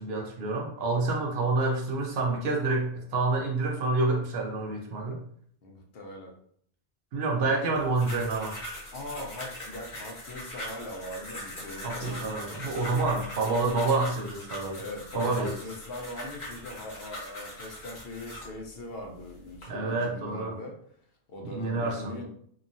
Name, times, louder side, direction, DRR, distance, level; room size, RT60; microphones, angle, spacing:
voice 1, 0.0-5.2 7.1-8.6 11.8-14.8 15.1-15.5 19.7-20.6 21.4-22.3, right 3 dB, 70° right, 1 dB, 0.8 m, -28 dB
voice 2, 5.6-6.4 8.9-13.3 14.8-20.8 21.3-22.3, left 1 dB, 65° left, 1 dB, 0.8 m, -41 dB
sound 1, 7.7-18.5 19.2-19.6, left 1 dB, 45° left, 1.0 m, -41 dB
3.0 x 2.2 x 2.5 m, 0.64 s
omnidirectional pair, 1.1 m